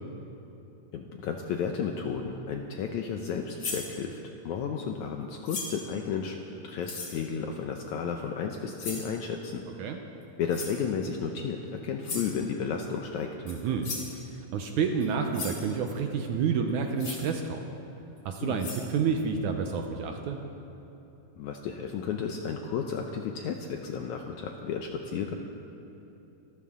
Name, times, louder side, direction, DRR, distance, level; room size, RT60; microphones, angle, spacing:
voice 1, 0.9-6.4 6.6-9.6 10.4-13.3 18.4-18.6 21.4-25.4, left 6 dB, 75° left, 3 dB, 1.8 m, -33 dB
sound 1, 3.6-3.9 5.4-5.9 6.8-7.2 8.8-9.1 10.5-10.8 12.0-12.3 13.5-13.6 13.8-14.1 15.0-15.1 15.3-15.6 17.0-17.2 18.2-18.3 18.6-18.8, left 3 dB, 40° left, 3.3 m, -36 dB
voice 2, 13.5-13.9 14.3-17.7 18.3-20.4, right 6 dB, 75° right, 4 dB, 1.9 m, -29 dB
26.0 x 12.5 x 3.7 m, 3.0 s
omnidirectional pair, 4.1 m